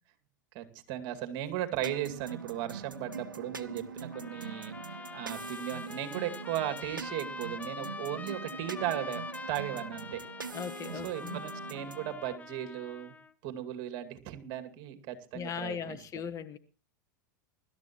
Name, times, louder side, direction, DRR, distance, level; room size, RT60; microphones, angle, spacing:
voice 1, 0.5-9.2 9.5-10.2 10.9-13.1 13.4-16.0, right 12 dB, 50° right, 2.3 m, -37 dB
sound 1, 1.8-12.1, right 5 dB, 90° right, 1.0 m, -43 dB
Trumpet, 4.1-13.3, left 4 dB, 15° left, 1.1 m, -44 dB
voice 2, 10.5-11.4 15.3-16.6, left 7 dB, 30° left, 1.3 m, -38 dB
24.5 x 12.5 x 3.1 m
hypercardioid pair, 95°, 11 cm